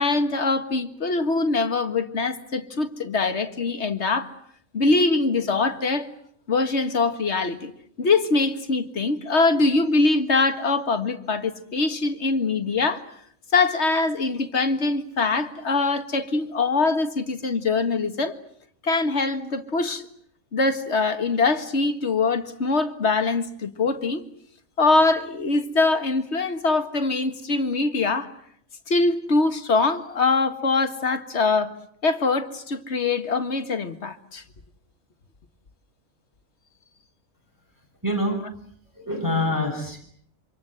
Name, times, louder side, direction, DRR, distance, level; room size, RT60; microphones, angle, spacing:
voice 1, 0.0-4.3 4.7-6.1 6.5-7.7 8.0-13.0 13.5-18.4 18.8-20.1 20.5-24.2 24.8-28.3 28.9-31.7 32.0-34.4, left 3 dB, 50° left, 2.0 m, -23 dB
voice 2, 38.0-38.4 39.0-40.0, left 1 dB, 15° right, 6.4 m, -25 dB
27.5 x 26.0 x 7.9 m
omnidirectional pair, 1.4 m